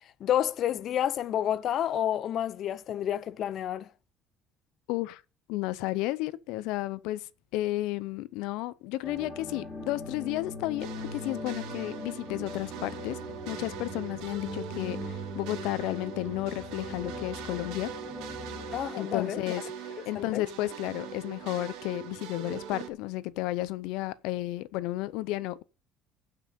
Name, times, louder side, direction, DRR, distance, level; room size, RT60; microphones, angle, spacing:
voice 1, 0.2-3.9 18.7-19.4 20.1-20.4, left 10 dB, 50° left, 0.7 m, -29 dB
voice 2, 4.9-5.2 5.5-13.2 13.5-17.9 19.0-25.6, left 17 dB, 90° left, 0.6 m, -33 dB
sound 1, 9.0-18.8, left 2 dB, 15° left, 5.0 m, -40 dB
sound 2, 10.8-22.9, right 8 dB, 85° right, 2.3 m, -42 dB
16.5 x 6.0 x 5.3 m
cardioid pair, 135°, 0 cm